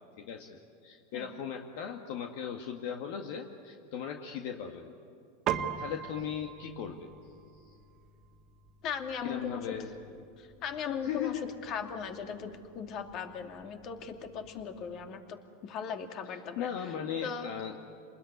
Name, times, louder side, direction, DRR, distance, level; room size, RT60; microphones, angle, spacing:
voice 1, 0.2-4.9 5.8-7.1 9.2-9.9 10.2-10.3 11.0-11.4 16.6-17.8, left 8 dB, 65° left, 3 dB, 1.9 m, -37 dB
Piano, 5.5-15.1, right 9 dB, 40° right, 1.6 m, -42 dB
voice 2, 8.8-9.7 10.4-16.9 17.2-17.5, left 7 dB, 45° left, 5 dB, 2.6 m, -38 dB
28.5 x 20.5 x 9.7 m, 2.5 s
hypercardioid pair, 110°, 0 cm